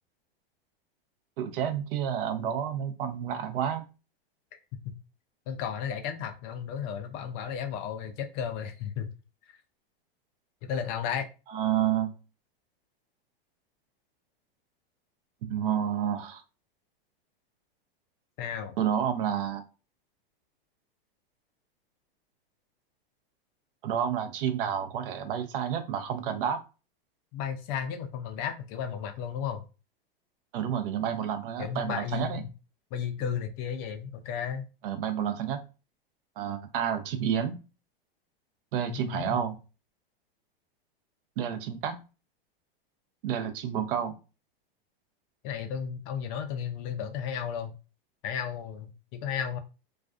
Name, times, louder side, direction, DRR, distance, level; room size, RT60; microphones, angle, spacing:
voice 1, 1.4-3.8 11.5-12.1 15.4-16.4 18.8-19.6 23.8-26.6 30.5-32.4 34.8-35.6 36.4-37.6 38.7-39.6 41.4-42.0 43.2-44.1, right 9 dB, 65° right, 7 dB, 0.6 m, -30 dB
voice 2, 5.5-9.1 10.6-11.3 18.4-18.7 27.3-29.6 31.6-32.4 32.9-34.7 38.9-39.4 45.4-47.7 48.2-49.6, left 8 dB, 40° left, 7 dB, 0.4 m, -34 dB
2.4 x 2.2 x 2.4 m, 0.32 s
hypercardioid pair, 125°, 30 cm